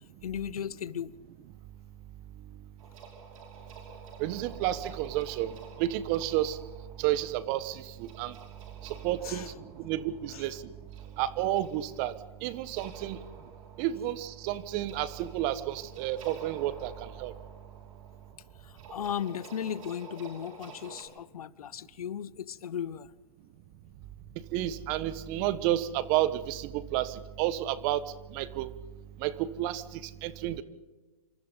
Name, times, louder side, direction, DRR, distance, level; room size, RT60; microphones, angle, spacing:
voice 1, 0.2-1.1 9.2-9.5 10.3-10.4 18.6-23.1, left 9 dB, 70° left, 0.9 m, -36 dB
sound 1, 2.8-21.0, right 4 dB, 55° right, 5.6 m, -51 dB
voice 2, 4.2-6.6 7.0-8.3 8.8-10.6 11.2-12.1 12.4-13.2 13.8-17.3 24.5-28.0 28.3-28.7 29.2-30.6, right 13 dB, 30° right, 1.2 m, -31 dB
27.0 x 25.5 x 4.0 m
hypercardioid pair, 140°, 20 cm